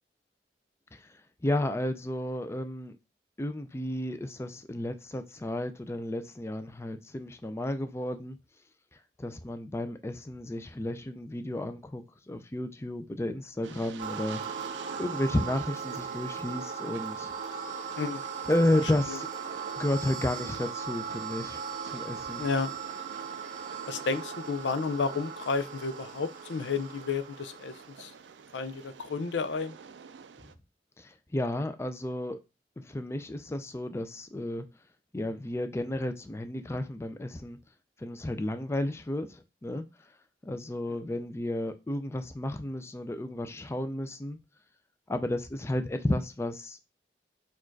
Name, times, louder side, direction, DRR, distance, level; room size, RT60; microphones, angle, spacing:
voice 1, 1.4-3.0 3.4-8.4 9.2-14.4 15.0-17.3 18.5-19.3 19.8-22.4 31.0-32.4 32.8-34.7 35.1-37.6 38.0-39.8 40.5-44.4 45.1-46.9, left 1 dB, 15° left, 0.4 m, -32 dB
Train, 13.6-30.5, right 6 dB, 80° right, 0.4 m, -48 dB
sound 1, 14.0-28.1, right 6 dB, 45° right, 0.7 m, -38 dB
voice 2, 22.4-22.7 23.9-28.1 28.5-29.8, left 4 dB, 85° left, 0.5 m, -31 dB
4.4 x 2.4 x 4.5 m
head